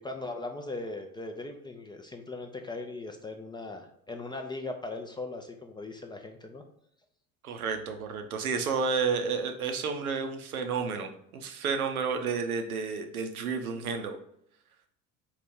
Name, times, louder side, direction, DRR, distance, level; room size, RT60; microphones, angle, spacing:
voice 1, 0.0-6.6, left 2 dB, 10° left, 4 dB, 0.4 m, -39 dB
voice 2, 7.4-14.2, right 5 dB, 85° right, 5 dB, 0.7 m, -31 dB
4.0 x 3.1 x 3.6 m, 0.70 s
figure-of-eight pair, 65°, 42 cm